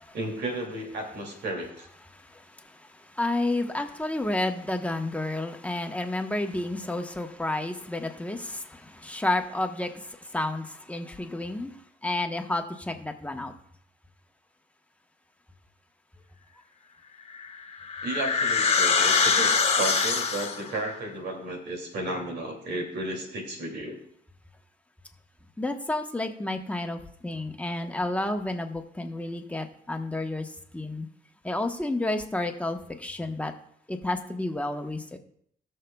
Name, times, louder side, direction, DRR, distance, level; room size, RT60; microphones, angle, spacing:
voice 1, 0.1-1.9 18.0-24.0, right 2 dB, 80° right, 1 dB, 2.6 m, -33 dB
voice 2, 2.1-11.7 12.0-13.5 25.6-31.1 31.4-33.5 33.9-35.2, left 2 dB, 10° left, 4 dB, 1.1 m, -31 dB
sound 1, 17.3-20.7, left 5 dB, 40° left, 1.3 m, -24 dB
19.5 x 6.6 x 2.3 m, 0.66 s
cardioid pair, 90°, 17 cm